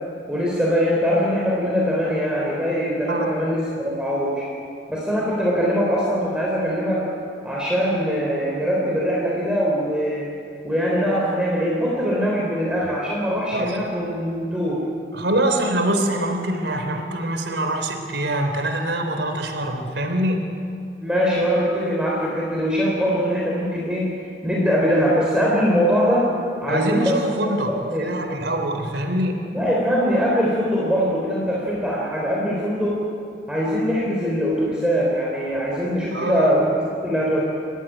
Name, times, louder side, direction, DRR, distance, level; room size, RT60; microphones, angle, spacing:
voice 1, 0.3-4.5 4.9-7.1 7.4-10.3 10.6-14.9 21.0-24.1 24.4-26.4 26.6-28.1 29.5-33.1 33.5-37.4, equal, 5° right, -4 dB, 3.7 m, -22 dB
voice 2, 15.1-20.4 26.7-27.7 28.0-29.4 36.1-36.5, right 1 dB, 80° right, 5 dB, 3.4 m, -24 dB
29.5 x 15.0 x 10.0 m, 2.6 s
head